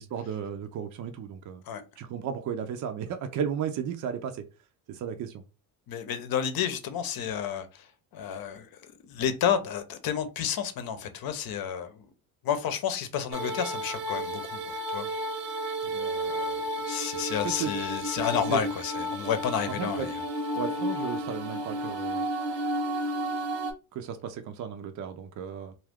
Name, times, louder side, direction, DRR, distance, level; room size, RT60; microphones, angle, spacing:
voice 1, 0.0-1.6 2.0-4.4 4.9-5.4 17.4-17.7 18.5-18.6 19.7-20.1 20.6-22.3 23.9-25.7, right 8 dB, 45° right, 0.5 m, -34 dB
voice 2, 5.9-7.9 8.1-12.0 12.4-15.1 15.8-20.1, left 8 dB, 50° left, 0.8 m, -31 dB
sound 1, 13.3-23.7, equal, 70° right, 0.9 m, -32 dB
2.6 x 2.3 x 3.5 m
hypercardioid pair, 70°, 44 cm